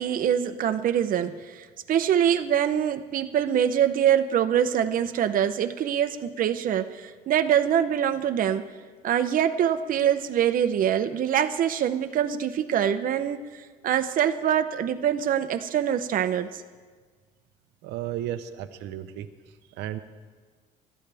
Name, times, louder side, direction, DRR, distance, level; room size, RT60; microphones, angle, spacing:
voice 1, 0.0-8.7 9.0-13.4 13.8-16.6, right 9 dB, 55° right, 8 dB, 0.8 m, -24 dB
voice 2, 17.8-19.3 19.7-20.0, right 12 dB, 90° right, 8 dB, 0.9 m, -33 dB
25.5 x 13.0 x 3.5 m, 1.5 s
cardioid pair, 110°, 17 cm